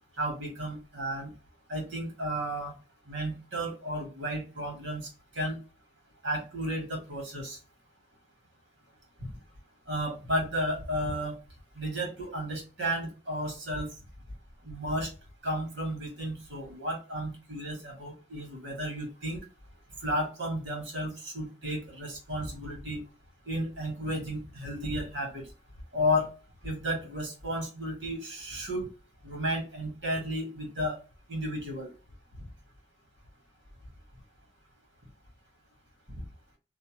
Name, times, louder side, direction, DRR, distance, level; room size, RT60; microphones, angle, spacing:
voice 1, 0.2-1.3 1.7-2.7 3.1-5.1 5.3-5.6 6.2-7.6 9.9-11.3 11.8-13.9 14.6-15.1 15.4-19.4 20.0-23.0 23.5-25.4 25.9-26.3 26.6-28.9 29.2-31.0 31.3-31.9, equal, 80° right, 1 dB, 1.5 m, -33 dB
2.8 x 2.1 x 2.9 m, 0.31 s
head